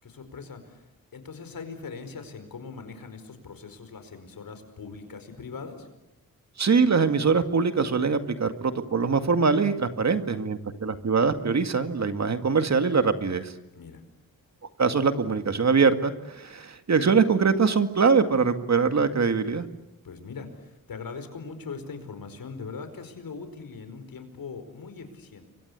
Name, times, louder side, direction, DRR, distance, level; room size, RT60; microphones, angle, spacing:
voice 1, 0.0-5.9 13.7-14.0 20.0-25.5, left 5 dB, 80° left, 9 dB, 5.0 m, -41 dB
voice 2, 6.6-13.5 14.8-19.7, right 5 dB, 50° right, 8 dB, 2.1 m, -23 dB
30.0 x 24.0 x 8.3 m, 0.89 s
wide cardioid pair, 90°, 34 cm